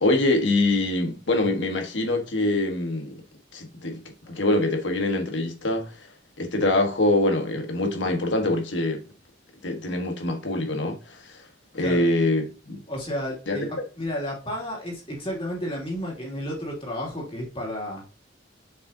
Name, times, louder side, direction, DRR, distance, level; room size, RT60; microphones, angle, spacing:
voice 1, 0.0-3.1 3.5-4.0 4.3-5.9 6.4-9.0 9.6-11.4 11.7-12.8 13.5-13.6, left 2 dB, 80° left, 1.5 m, -24 dB
voice 2, 12.9-18.0, equal, 30° left, 2.8 m, -32 dB
6.5 x 5.4 x 2.8 m
head